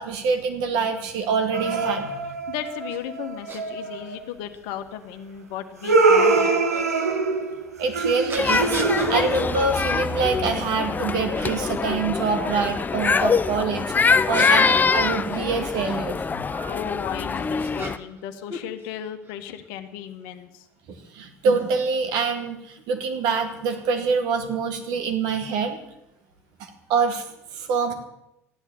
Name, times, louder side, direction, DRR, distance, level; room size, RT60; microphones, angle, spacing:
voice 1, 0.0-2.3 7.8-8.8 9.1-13.9 14.3-16.7 20.9-25.8 26.6-27.2 27.5-27.9, right 5 dB, 55° right, 5 dB, 2.1 m, -25 dB
sound 1, 1.5-4.2 5.8-9.7, right 3 dB, 80° right, 1.5 m, -23 dB
voice 2, 2.5-6.6 16.6-20.6, left 10 dB, 60° left, 8 dB, 1.3 m, -35 dB
sound 2, 2.9-3.0 3.5-3.6 4.5-4.6 6.7-6.9 8.3-9.1 9.7-9.9 10.4-10.9 11.3-11.8 14.0-16.0 16.9-18.2 18.5-19.4, right 2 dB, 30° right, 2.2 m, -39 dB
sound 3, 8.4-18.0, left 5 dB, 20° left, 0.6 m, -24 dB
14.0 x 10.5 x 7.3 m, 0.85 s
figure-of-eight pair, 60°, 8 cm